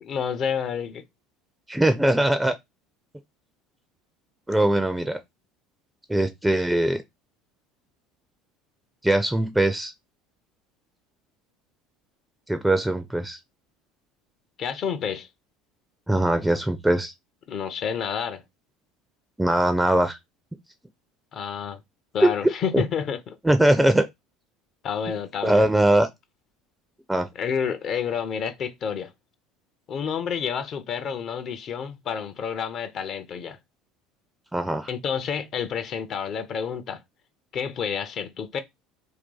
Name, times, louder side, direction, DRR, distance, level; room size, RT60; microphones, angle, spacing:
voice 1, 0.0-1.0 14.6-15.3 17.5-18.4 21.3-21.8 22.1-23.4 24.8-25.7 27.3-29.1 29.9-33.6 34.9-37.0 37.5-38.6, left 7 dB, 45° left, 0.5 m, -29 dB
voice 2, 1.7-2.5 4.5-5.2 6.1-7.0 9.0-9.9 12.5-13.4 16.1-17.1 19.4-20.2 22.2-22.3 22.7-22.8 23.4-24.1 25.4-26.1 27.1-27.3 34.5-34.9, right 1 dB, 5° right, 0.4 m, -21 dB
2.6 x 2.3 x 3.8 m
hypercardioid pair, 70°, 0 cm